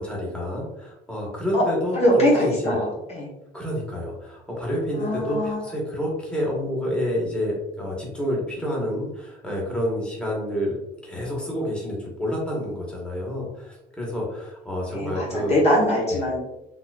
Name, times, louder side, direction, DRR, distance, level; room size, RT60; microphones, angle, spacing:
voice 1, 0.0-2.8 3.5-15.6 16.1-16.2, equal, 5° left, -4 dB, 1.2 m, -28 dB
voice 2, 1.9-3.3 5.0-5.6 14.9-16.4, equal, 40° left, -4 dB, 1.0 m, -22 dB
3.9 x 2.8 x 2.4 m, 0.89 s
cardioid pair, 110°, 17 cm